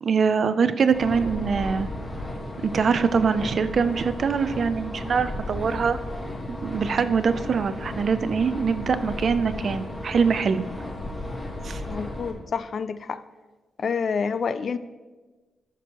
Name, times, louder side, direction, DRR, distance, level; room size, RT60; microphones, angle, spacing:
voice 1, 0.0-1.9 2.7-6.0 6.5-10.7 11.6-11.8, right 5 dB, 45° right, 12 dB, 0.4 m, -23 dB
sound 1, 0.9-12.3, left 1 dB, 20° left, 1.3 m, -34 dB
voice 2, 11.9-13.2 13.8-14.8, left 6 dB, 45° left, 13 dB, 0.3 m, -28 dB
13.5 x 6.0 x 3.0 m, 1.3 s
wide cardioid pair, 170°, 0 cm